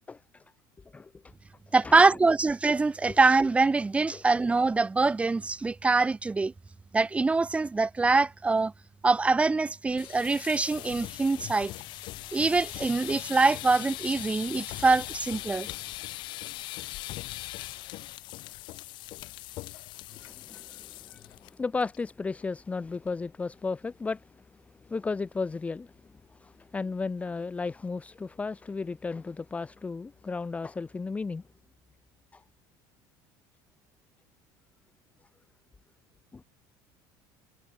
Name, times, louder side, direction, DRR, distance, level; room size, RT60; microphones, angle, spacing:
voice 1, 0.1-0.4 0.9-1.1 1.8-2.2 3.1-3.2 4.1-4.2 20.1-24.2 24.8-25.9 26.4-31.4 32.3-32.4 36.3-36.4, left 4 dB, 15° left, 1.0 m, -34 dB
voice 2, 1.7-6.5 6.9-8.7 9.0-11.7 12.3-15.7, right 3 dB, 15° right, 1.9 m, -24 dB
sound 1, 9.9-21.5 21.8-22.1 22.4-22.5 22.9-23.3, left 18 dB, 60° left, 3.1 m, -40 dB
cardioid pair, 135°, 9 cm